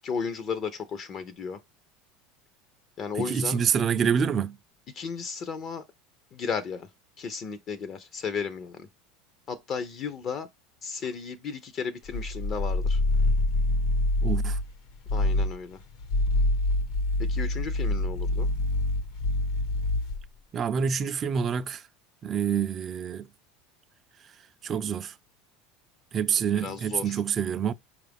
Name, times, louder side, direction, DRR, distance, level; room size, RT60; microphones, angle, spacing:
voice 1, 0.0-1.6 3.0-3.6 4.9-5.8 6.3-6.9 7.2-8.9 9.5-10.5 10.8-13.0 15.1-15.8 17.3-18.5 26.6-27.2, left 6 dB, 40° left, 0.5 m, -34 dB
voice 2, 3.1-4.6 14.2-14.6 20.5-21.9 22.2-23.3 24.6-25.2 26.1-27.7, right 7 dB, 30° right, 0.3 m, -27 dB
sound 1, 12.0-14.7 15.1-15.6 16.0-20.3, left 2 dB, 65° left, 0.9 m, -26 dB
4.5 x 2.4 x 3.4 m
supercardioid pair, 125°, 0 cm